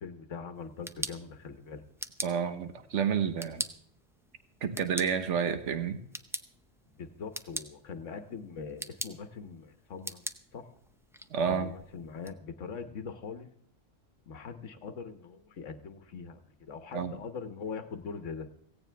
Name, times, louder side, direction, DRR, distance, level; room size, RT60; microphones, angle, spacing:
voice 1, 0.0-1.8 6.9-10.2 10.5-10.7 11.5-13.5 14.2-18.5, left 5 dB, 85° left, 9 dB, 1.4 m, -42 dB
sound 1, 0.6-12.3, equal, 5° right, 0.4 m, -43 dB
voice 2, 2.2-3.6 4.6-6.0 11.3-11.7 16.9-17.1, right 7 dB, 75° right, 9 dB, 1.4 m, -30 dB
17.0 x 16.5 x 3.4 m, 0.65 s
omnidirectional pair, 1.2 m